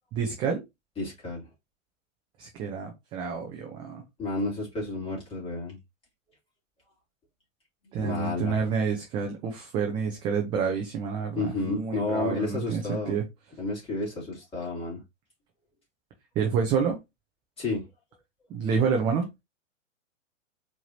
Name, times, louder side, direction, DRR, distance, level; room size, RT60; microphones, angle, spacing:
voice 1, 0.1-0.6 2.4-4.0 7.9-13.2 16.4-17.0 18.5-19.3, right 6 dB, 15° right, 0.4 m, -28 dB
voice 2, 1.0-1.5 4.2-5.8 8.0-8.6 11.3-13.2 13.6-15.0 17.6-17.8 18.7-18.8, left 3 dB, 15° left, 2.6 m, -31 dB
4.6 x 3.3 x 2.6 m
figure-of-eight pair, 110°, 39 cm